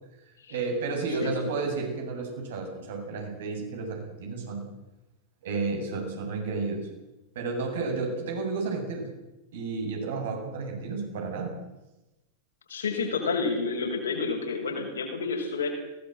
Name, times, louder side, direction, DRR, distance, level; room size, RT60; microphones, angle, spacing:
voice 1, 0.5-4.7 5.4-6.9 7.3-9.1 9.5-11.5, right 4 dB, 60° right, 2 dB, 7.8 m, -32 dB
voice 2, 1.2-1.7 12.7-15.7, left 4 dB, 70° left, 2 dB, 6.9 m, -30 dB
23.0 x 19.0 x 8.0 m, 0.97 s
figure-of-eight pair, 90°, 0 cm